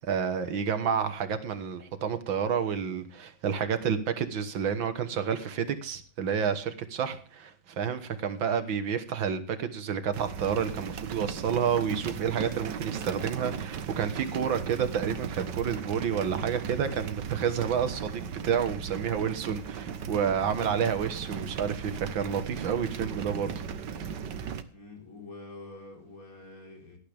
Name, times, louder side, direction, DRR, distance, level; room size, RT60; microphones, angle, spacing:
voice 1, 0.0-24.0, right 7 dB, 85° right, 10 dB, 2.2 m, -30 dB
sound 1, 10.1-24.6, right 7 dB, 65° right, 1.6 m, -37 dB
voice 2, 20.5-21.0 24.7-27.0, left 3 dB, 45° left, 1 dB, 4.6 m, -46 dB
18.0 x 11.5 x 3.5 m, 0.40 s
omnidirectional pair, 2.0 m